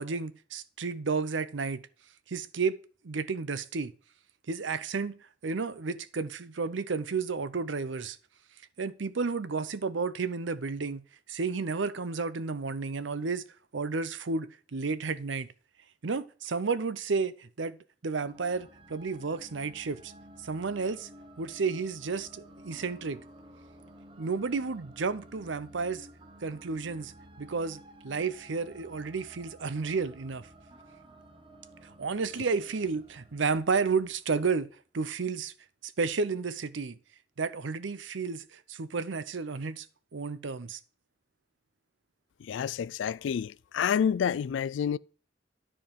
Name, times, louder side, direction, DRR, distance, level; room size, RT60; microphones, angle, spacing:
voice 1, 0.0-1.8 2.3-2.8 3.0-3.9 4.5-8.2 8.8-11.0 11.3-13.4 13.7-15.5 16.0-17.8 18.0-20.1 20.4-21.1 21.4-23.2 24.2-26.1 26.4-27.1 27.4-27.8 28.0-30.5 32.0-34.7 34.9-35.5 35.8-37.0 37.4-39.9 40.1-40.8, right 4 dB, 80° right, 0.7 m, -32 dB
sound 1, 18.2-34.4, right 1 dB, 25° right, 1.0 m, -53 dB
voice 2, 42.5-45.0, left 7 dB, 75° left, 0.3 m, -28 dB
10.0 x 4.6 x 5.3 m
head